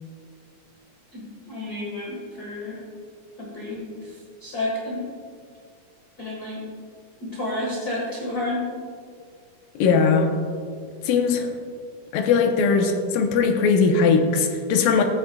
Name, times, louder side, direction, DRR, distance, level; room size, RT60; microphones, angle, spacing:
voice 1, 1.1-2.8 3.4-4.1 4.4-5.0 6.2-6.6 7.2-8.6, left 1 dB, 50° left, -5 dB, 1.2 m, -30 dB
voice 2, 9.8-10.4 11.0-11.6 12.1-15.0, left 5 dB, 85° left, 4 dB, 2.5 m, -20 dB
13.5 x 8.5 x 2.2 m, 2.2 s
omnidirectional pair, 3.9 m